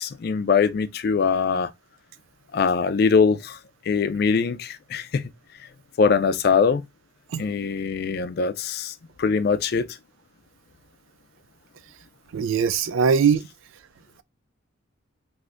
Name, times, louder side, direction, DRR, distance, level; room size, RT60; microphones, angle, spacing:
voice 1, 0.0-1.7 2.5-3.6 3.9-5.2 6.0-6.8 7.4-9.9, left 5 dB, 50° left, 0.3 m, -22 dB
voice 2, 12.3-13.4, right 6 dB, 80° right, 0.3 m, -20 dB
3.3 x 2.6 x 2.4 m
head